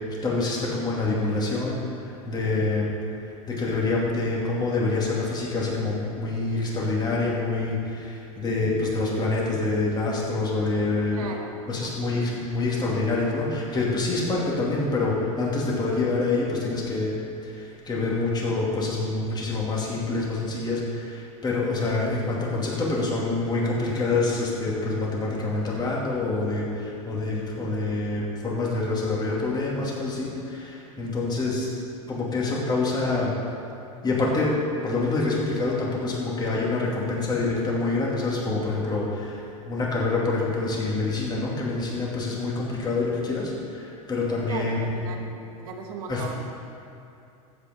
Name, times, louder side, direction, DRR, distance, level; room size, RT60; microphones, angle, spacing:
voice 1, 0.2-2.9 3.2-11.3 11.7-17.2 17.4-31.7 32.1-33.3 34.0-34.5 34.8-45.2 46.1-46.2, left 3 dB, 20° left, -4 dB, 2.6 m, -26 dB
voice 2, 11.1-11.9 44.5-45.3 45.6-46.4, right 5 dB, 80° right, 3 dB, 1.4 m, -37 dB
15.0 x 5.3 x 5.3 m, 2.7 s
supercardioid pair, 120°, 19 cm